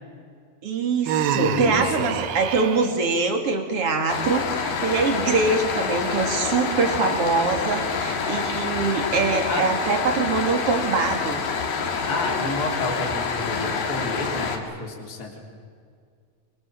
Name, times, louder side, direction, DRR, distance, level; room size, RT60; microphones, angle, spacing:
voice 1, 0.6-11.4, right 4 dB, 45° right, 4 dB, 3.2 m, -23 dB
Human voice, 1.1-2.9, right 10 dB, 85° right, 3.0 m, -27 dB
voice 2, 1.4-2.2 9.5-9.6 12.1-15.4, left 2 dB, 25° left, 0 dB, 3.8 m, -30 dB
sound 1, 4.1-14.6, left 5 dB, 70° left, 3.9 m, -27 dB
25.0 x 25.0 x 7.7 m, 2.2 s
omnidirectional pair, 4.2 m